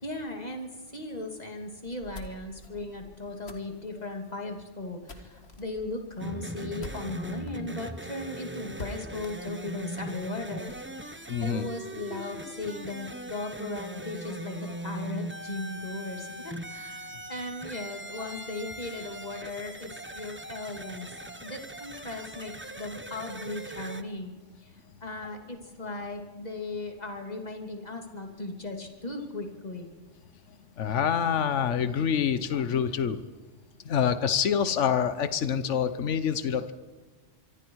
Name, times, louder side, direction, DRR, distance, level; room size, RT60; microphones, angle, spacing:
voice 1, 0.0-10.7 11.0-11.1 11.4-19.9 20.1-21.1 21.4-24.3 25.0-29.9, left 2 dB, 35° left, 3 dB, 2.7 m, -37 dB
sound 1, 1.8-7.5 7.9-8.0 8.2-8.3 8.8-10.9, left 2 dB, 55° left, 2.0 m, -47 dB
sound 2, 6.2-24.0, right 1 dB, 10° right, 0.8 m, -40 dB
voice 2, 11.3-11.7 12.1-12.3 18.2-18.3 30.8-33.2 33.8-36.7, left 8 dB, 75° left, 12 dB, 1.3 m, -26 dB
25.0 x 24.5 x 4.7 m, 1.3 s
omnidirectional pair, 1.3 m